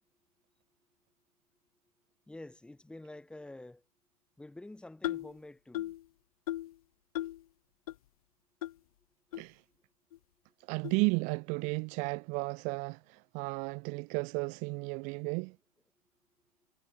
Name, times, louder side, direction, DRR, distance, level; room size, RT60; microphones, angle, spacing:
voice 1, 2.3-3.8 4.4-5.9 11.7-11.8 12.1-12.3 12.9-13.0 14.9-15.1, left 2 dB, 5° left, 1.9 m, -49 dB
sound 1, 5.0-5.3 5.7-6.0 6.5-6.7 7.1-7.4 7.9-8.0 8.6-8.7 9.3-9.4 10.1-10.2 10.8-11.0, left 14 dB, 80° left, 0.5 m, -36 dB
voice 2, 10.7-15.6, right 32 dB, 45° right, 0.4 m, -33 dB
hypercardioid pair, 115°, 19 cm